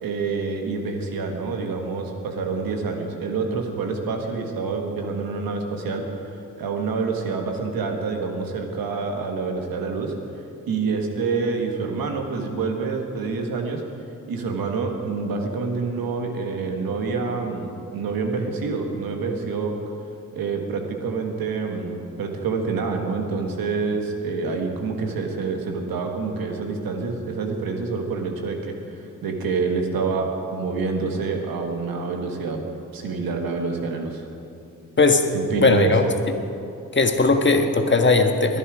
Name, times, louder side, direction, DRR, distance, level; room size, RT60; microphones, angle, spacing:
voice 1, 0.0-6.0 6.6-10.1 10.7-13.8 14.3-19.7 20.3-32.6 32.9-34.3 35.3-35.9, right 4 dB, 90° right, 3 dB, 1.7 m, -27 dB
voice 2, 35.6-36.0 36.9-38.6, left 3 dB, 35° left, 5 dB, 1.6 m, -18 dB
21.0 x 10.0 x 5.0 m, 2.6 s
cardioid pair, 55°, 34 cm